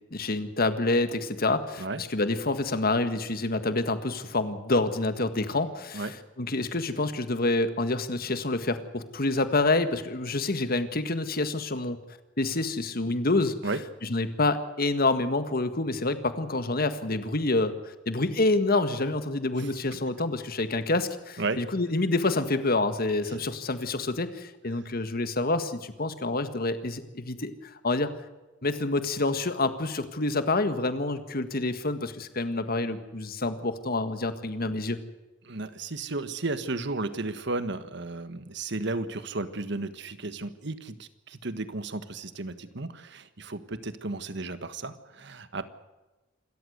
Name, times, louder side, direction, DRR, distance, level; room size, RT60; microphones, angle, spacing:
voice 1, 0.1-6.1 6.4-12.0 12.4-13.5 14.1-28.1 28.6-35.0, left 2 dB, 50° left, 10 dB, 1.7 m, -27 dB
voice 2, 19.6-20.0 21.4-21.6 23.3-23.4 24.7-24.8 35.4-45.7, right 2 dB, 65° right, 11 dB, 1.5 m, -34 dB
27.0 x 13.5 x 8.1 m, 1.1 s
head